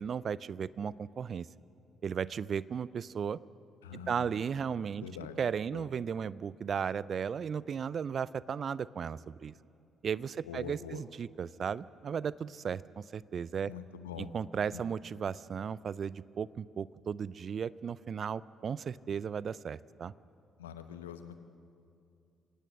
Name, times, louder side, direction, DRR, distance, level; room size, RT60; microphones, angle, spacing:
voice 1, 0.0-1.5 2.0-3.4 4.1-5.0 5.4-9.5 10.0-13.7 14.2-20.1, right 7 dB, 50° right, 20 dB, 0.5 m, -35 dB
voice 2, 3.8-4.3 5.0-5.4 5.7-5.9 10.5-11.0 13.7-14.3 14.7-14.8 20.6-21.4, left 8 dB, 80° left, 10 dB, 0.9 m, -44 dB
27.0 x 18.5 x 6.4 m, 2.5 s
figure-of-eight pair, 45°, 0 cm